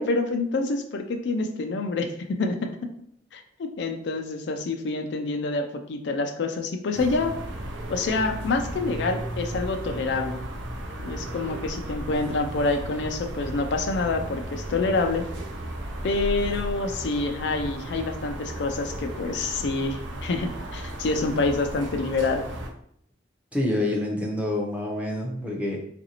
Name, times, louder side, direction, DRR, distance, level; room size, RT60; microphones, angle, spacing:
voice 1, 0.0-2.9 3.3-7.3 7.9-10.4 11.1-15.3 16.0-22.4, left 3 dB, 65° left, 5 dB, 0.4 m, -27 dB
sound 1, 6.9-22.7, right 1 dB, 80° right, 0.5 m, -35 dB
voice 2, 23.5-25.8, left 1 dB, 10° right, -1 dB, 0.6 m, -27 dB
3.9 x 2.6 x 2.8 m, 0.68 s
head